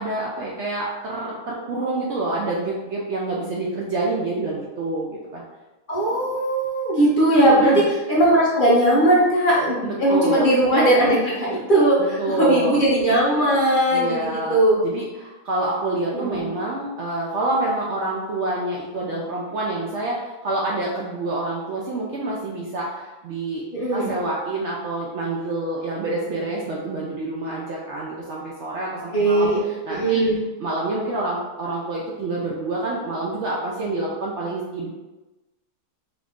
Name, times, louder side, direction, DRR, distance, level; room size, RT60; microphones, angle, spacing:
voice 1, 0.0-5.4 7.5-7.8 9.8-10.5 12.0-12.8 13.9-23.7 23.9-30.2 30.6-34.9, right 2 dB, 70° right, -3 dB, 0.6 m, -27 dB
voice 2, 5.9-7.8 8.1-14.8 16.1-16.5 23.7-24.2 29.1-29.6 29.9-30.4, right 1 dB, 50° left, -6 dB, 0.6 m, -19 dB
3.1 x 2.5 x 3.4 m, 1.1 s
omnidirectional pair, 1.7 m